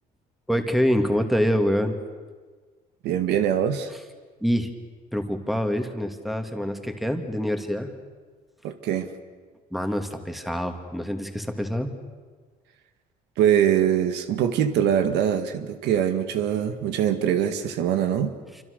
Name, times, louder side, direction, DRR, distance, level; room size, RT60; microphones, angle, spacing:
voice 1, 0.5-2.0 4.4-4.7 5.1-7.9 9.7-11.9, equal, ahead, 6 dB, 2.4 m, -25 dB
voice 2, 3.0-3.9 8.6-9.1 13.4-18.3, right 9 dB, 85° right, 8 dB, 1.8 m, -23 dB
27.5 x 25.0 x 6.7 m, 1.5 s
cardioid pair, 110°, 17 cm